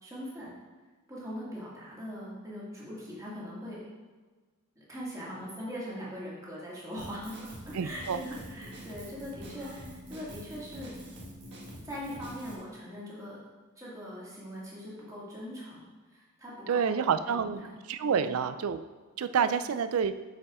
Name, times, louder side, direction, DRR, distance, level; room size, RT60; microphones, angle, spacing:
voice 1, 0.0-0.5 1.1-3.9 4.8-11.0 11.8-13.4 13.8-15.8 16.1-17.7 18.0-18.3 19.4-19.6, equal, 15° right, -7 dB, 2.1 m, -41 dB
Drum kit, 7.0-12.6, equal, 55° right, 1.5 m, -45 dB
voice 2, 7.7-8.2 16.7-17.6 17.9-18.8 19.2-20.1, right 7 dB, 75° right, 11 dB, 0.4 m, -28 dB
6.9 x 4.7 x 4.9 m, 1.3 s
head